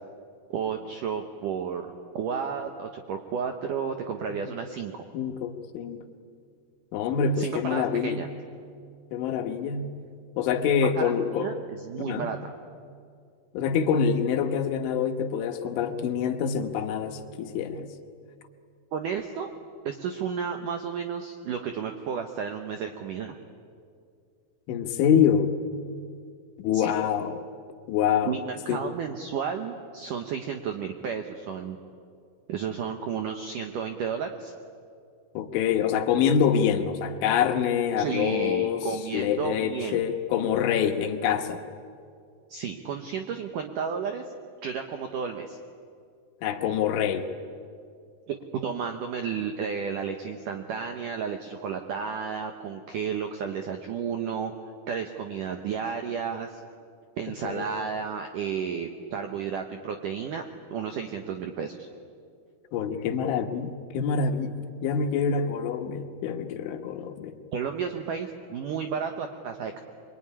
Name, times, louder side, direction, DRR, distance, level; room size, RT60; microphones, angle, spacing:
voice 1, 0.5-1.9 2.1-5.0 7.4-8.3 11.0-12.5 18.9-19.5 19.9-23.3 26.7-26.9 28.3-31.8 32.5-34.5 38.0-40.0 42.5-44.2 44.6-45.6 48.3-48.4 48.6-54.5 54.9-56.6 57.2-60.4 60.7-61.8 67.5-69.8, right 7 dB, 75° right, 5 dB, 1.9 m, -32 dB
voice 2, 5.1-6.0 6.9-8.3 9.1-9.9 10.4-11.5 12.0-12.3 13.5-17.9 24.7-25.5 26.6-27.4 27.9-28.4 28.7-28.8 35.4-38.9 39.1-41.6 46.4-47.3 57.4-57.7 62.7-64.6 64.8-67.4, left 7 dB, 90° left, 6 dB, 3.8 m, -26 dB
24.5 x 24.0 x 10.0 m, 2.3 s
omnidirectional pair, 5.4 m